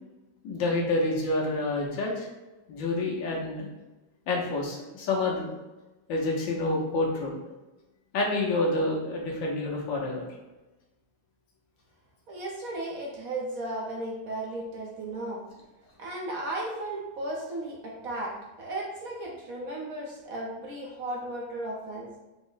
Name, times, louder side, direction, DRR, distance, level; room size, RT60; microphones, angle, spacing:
voice 1, 0.4-2.3 2.7-3.7 4.3-5.5 6.1-7.3 8.1-10.2, left 2 dB, 85° left, -2 dB, 1.6 m, -28 dB
voice 2, 12.3-15.4 16.0-22.1, right 1 dB, 60° right, -3 dB, 1.0 m, -35 dB
4.7 x 2.1 x 3.9 m, 1.1 s
omnidirectional pair, 2.0 m